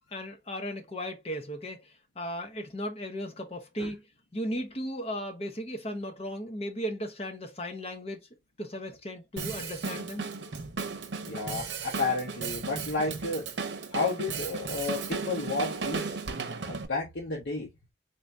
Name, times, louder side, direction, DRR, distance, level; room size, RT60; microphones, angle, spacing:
voice 1, 0.1-1.8 2.2-4.0 4.3-8.3 8.6-10.3, equal, 35° left, 0.9 m, -36 dB
Drum kit, 9.4-16.9, right 4 dB, 85° right, 0.7 m, -35 dB
voice 2, 11.2-13.5 13.9-16.2 16.7-17.7, left 3 dB, 85° left, 1.1 m, -32 dB
3.9 x 2.6 x 3.3 m
head